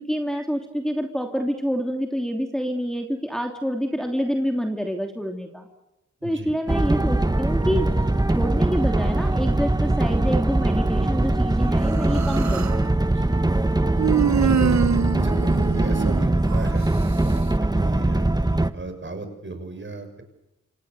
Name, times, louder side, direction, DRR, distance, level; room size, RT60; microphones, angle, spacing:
voice 1, 0.0-5.7 6.2-7.9 8.3-12.8 14.5-14.9, equal, ahead, 2 dB, 3.1 m, -27 dB
voice 2, 6.2-6.5 12.7-13.3 14.3-14.7 15.2-18.3 18.7-20.2, right 3 dB, 40° right, 7 dB, 6.3 m, -36 dB
sound 1, 6.7-18.7, right 2 dB, 15° right, 1.3 m, -21 dB
Human voice, 11.9-12.8 14.0-16.7, right 7 dB, 75° right, 1.1 m, -25 dB
28.5 x 26.5 x 6.9 m, 0.95 s
wide cardioid pair, 110°, 29 cm